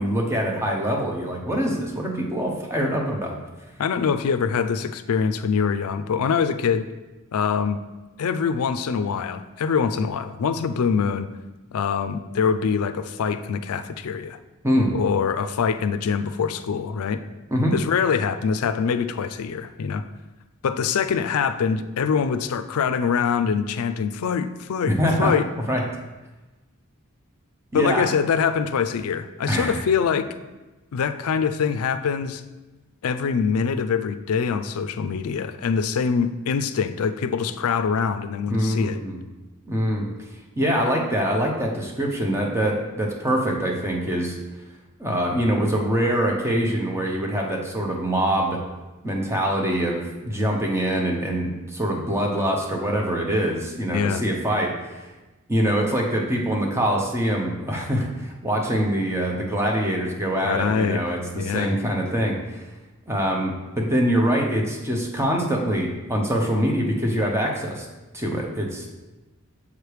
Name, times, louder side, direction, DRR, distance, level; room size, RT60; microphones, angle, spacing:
voice 1, 0.0-3.4 14.6-14.9 17.5-17.7 24.8-25.3 25.7-25.8 27.7-28.1 29.5-29.8 38.5-39.2 39.7-40.1 40.6-44.4 45.0-48.6 49.0-55.1 55.5-62.6 63.1-67.9 68.1-68.9, equal, 10° right, 0 dB, 0.9 m, -24 dB
voice 2, 3.8-6.9 7.3-7.8 8.2-11.3 11.7-14.4 14.9-17.2 17.7-20.0 20.6-25.5 27.7-30.3 30.9-32.4 33.0-39.0 53.9-54.2 60.4-61.0 61.3-61.7, left 6 dB, 75° left, 11 dB, 0.4 m, -24 dB
7.0 x 3.3 x 4.7 m, 1.1 s
head